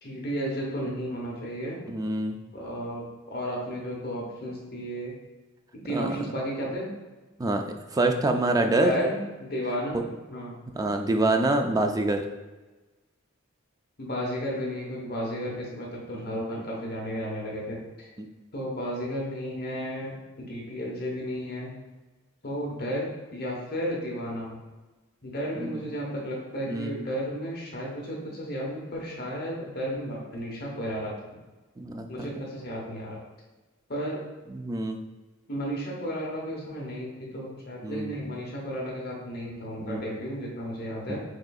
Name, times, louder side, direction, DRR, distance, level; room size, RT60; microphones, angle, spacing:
voice 1, 0.0-1.8 2.5-5.1 5.7-6.9 8.6-10.0 10.3-10.6 14.0-18.1 18.5-21.7 22.4-24.6 25.2-31.4 32.1-33.2 33.9-34.2 35.5-41.2, equal, 50° left, -2 dB, 1.0 m, -33 dB
voice 2, 1.9-2.4 5.9-6.2 7.4-7.6 7.9-8.9 10.7-12.3 16.1-16.3 18.2-18.3 25.6-25.9 26.7-27.0 31.8-32.3 34.5-35.0 37.8-38.2 39.8-40.0 41.1-41.2, right 2 dB, 20° right, 5 dB, 0.3 m, -26 dB
6.2 x 2.6 x 2.3 m, 1.2 s
head